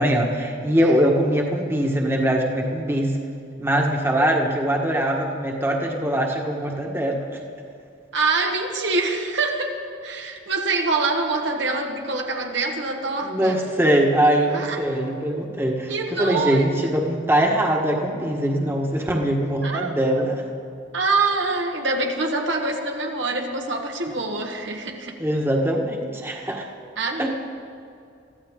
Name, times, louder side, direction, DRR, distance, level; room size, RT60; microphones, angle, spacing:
voice 1, 0.0-3.1 3.6-7.3 13.2-15.9 16.2-20.3 25.2-26.7 27.2-27.3, right 1 dB, 15° right, 0 dB, 1.4 m, -22 dB
voice 2, 8.1-13.6 14.5-14.8 15.9-16.9 19.6-20.0 20.9-25.2 27.0-27.3, right 3 dB, 75° right, 2 dB, 1.6 m, -25 dB
23.5 x 14.5 x 3.7 m, 2.5 s
head